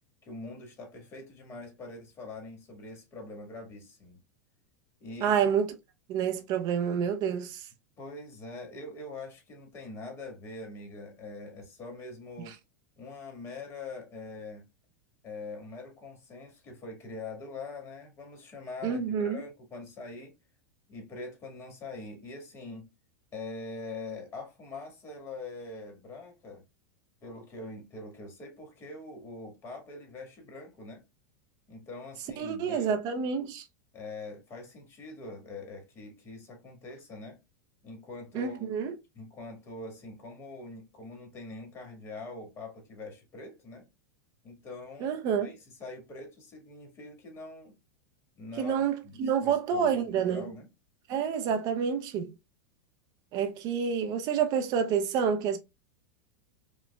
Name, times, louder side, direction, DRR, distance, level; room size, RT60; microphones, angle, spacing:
voice 1, 0.2-4.2 5.0-5.4 8.0-12.6 13.0-14.6 15.2-20.3 20.9-22.9 23.3-26.6 27.2-31.0 31.7-33.0 33.9-37.4 37.8-38.7 39.1-43.9 44.4-47.8 48.3-50.0 50.3-50.7, left 3 dB, 30° left, 1.6 m, -43 dB
voice 2, 5.2-5.7 6.1-7.7 18.8-19.4 32.4-33.7 38.3-39.0 45.0-45.6 48.6-50.5 51.1-52.3 53.3-55.6, right 7 dB, 45° right, 0.6 m, -28 dB
5.2 x 2.2 x 2.3 m
hypercardioid pair, 110°, 9 cm